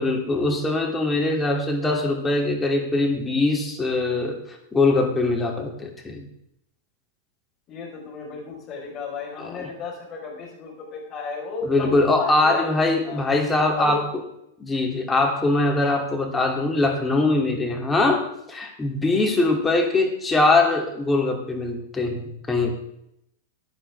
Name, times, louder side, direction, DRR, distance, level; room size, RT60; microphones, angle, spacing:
voice 1, 0.0-6.3 9.4-9.7 11.6-14.2 14.6-22.7, left 2 dB, 15° left, 2 dB, 2.9 m, -22 dB
voice 2, 7.7-12.7 13.0-13.2 13.8-14.0, left 4 dB, 35° left, 0 dB, 4.8 m, -34 dB
15.5 x 9.8 x 3.6 m, 0.79 s
hypercardioid pair, 110°, 0 cm